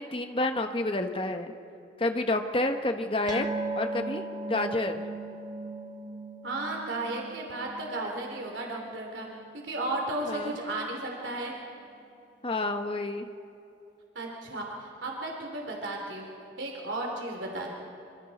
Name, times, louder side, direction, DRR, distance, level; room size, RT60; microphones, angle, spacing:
voice 1, 0.0-1.5 2.0-3.5 3.8-5.0 10.2-10.5 12.4-13.3, left 2 dB, 30° left, 6 dB, 1.1 m, -29 dB
sound 1, 3.3-10.1 10.4-10.6 11.0-11.1, right 2 dB, 20° right, 1.3 m, -38 dB
voice 2, 6.4-9.3 9.5-11.5 14.1-17.7, right 2 dB, 85° right, 0 dB, 3.1 m, -34 dB
25.5 x 25.5 x 4.2 m, 2.8 s
head